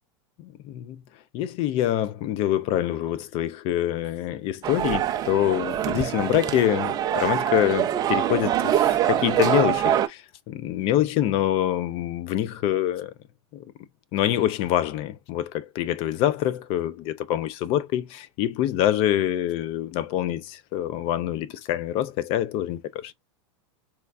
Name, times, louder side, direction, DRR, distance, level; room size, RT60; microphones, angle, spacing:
voice 1, 1.3-13.1 13.5-13.7 14.1-23.1, left 12 dB, 40° left, 0.4 m, -25 dB
sound 1, 4.6-10.1, right 11 dB, 25° right, 0.4 m, -24 dB
4.3 x 2.2 x 2.4 m
supercardioid pair, 135°, 15 cm